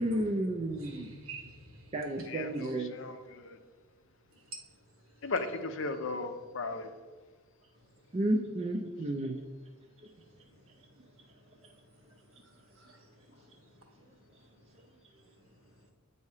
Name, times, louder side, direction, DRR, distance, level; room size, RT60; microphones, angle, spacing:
voice 1, 0.0-1.1 1.9-2.9 8.1-9.4, right 1 dB, 30° right, 1 dB, 0.4 m, -31 dB
voice 2, 0.6-2.3 2.6-2.7 7.8-7.9 10.5-10.9 12.1-12.2 12.4-13.7 14.1-14.2 15.2-15.3, right 3 dB, 70° right, 1 dB, 1.2 m, -51 dB
voice 3, 2.3-3.6 5.2-6.9, left 3 dB, 60° left, 7 dB, 0.5 m, -36 dB
8.2 x 2.8 x 4.8 m, 1.4 s
head